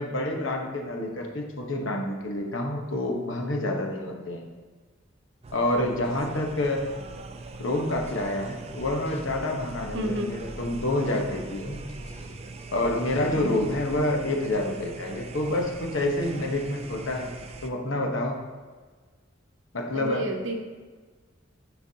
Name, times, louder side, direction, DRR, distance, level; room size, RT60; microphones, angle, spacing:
voice 1, 0.0-4.4 5.5-6.9 7.6-11.8 12.7-17.3 17.6-18.4 19.7-20.3, left 1 dB, 70° left, 1 dB, 1.1 m, -28 dB
sound 1, 5.4-17.7, right 3 dB, 30° right, 0.4 m, -42 dB
sound 2, 7.9-8.4 8.8-12.4 12.8-14.0, left 1 dB, 30° left, 0.5 m, -45 dB
voice 2, 9.9-10.5 13.3-13.7 19.9-20.6, equal, 70° right, 4 dB, 0.8 m, -31 dB
9.8 x 4.6 x 2.8 m, 1.4 s
head